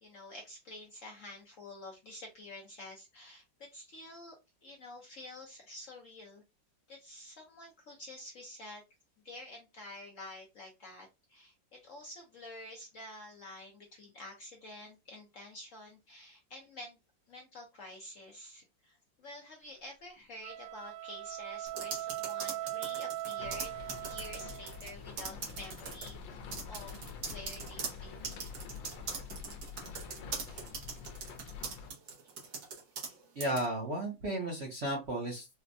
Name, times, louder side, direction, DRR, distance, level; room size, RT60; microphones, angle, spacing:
voice 1, 0.0-6.4 6.9-8.8 9.2-17.0 17.3-23.7 24.0-26.4 26.7-26.9 27.2-28.4, left 1 dB, 60° left, 0 dB, 0.8 m, -49 dB
sound 1, 20.3-24.9, right 14 dB, 70° right, 1.1 m, -40 dB
sound 2, 21.7-24.9 25.2-26.1 26.5-33.1 33.4-33.6, right 5 dB, 90° right, 1.7 m, -41 dB
sound 3, 23.4-31.9, left 5 dB, 90° left, 1.4 m, -46 dB
voice 2, 33.0-35.5, right 1 dB, 50° right, -1 dB, 0.8 m, -34 dB
4.3 x 2.1 x 2.5 m, 0.24 s
omnidirectional pair, 2.0 m